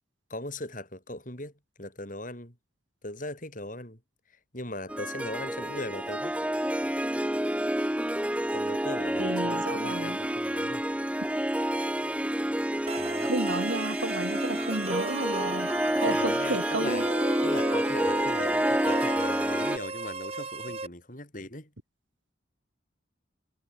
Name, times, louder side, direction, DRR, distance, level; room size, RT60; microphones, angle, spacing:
voice 1, 0.3-1.5 1.8-2.6 3.0-4.0 4.3-6.4 8.5-10.8 13.0-13.3 15.9-17.0 17.4-21.7, left 1 dB, 40° left, 7.8 m, -39 dB
Harp, 4.9-19.8, right 1 dB, 5° right, 1.0 m, -28 dB
voice 2, 9.2-10.2 13.2-15.7 16.0-17.0, right 2 dB, 70° right, 2.0 m, -32 dB
sound 1, 12.9-20.9, right 3 dB, 30° right, 2.0 m, -36 dB
head